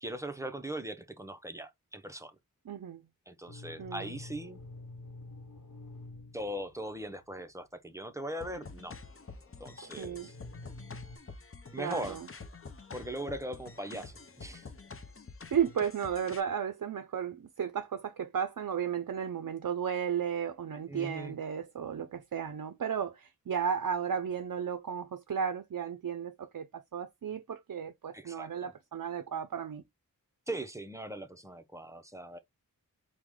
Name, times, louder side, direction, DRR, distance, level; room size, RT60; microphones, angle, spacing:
voice 1, 0.0-2.4 3.3-4.6 6.3-9.0 9.6-10.4 11.7-12.2 12.9-14.7 20.9-21.4 28.1-28.7 30.5-32.4, right 1 dB, 10° right, 0.6 m, -40 dB
voice 2, 2.7-3.0 3.8-4.1 9.8-10.3 11.8-12.3 13.9-14.0 15.5-29.8, right 8 dB, 65° right, 0.5 m, -34 dB
sound 1, 3.5-7.4 9.6-9.7 10.1-11.2, left 2 dB, 65° left, 1.0 m, -48 dB
sound 2, 8.4-16.4, left 4 dB, 40° left, 0.6 m, -48 dB
4.7 x 2.2 x 3.6 m
wide cardioid pair, 50°, 35 cm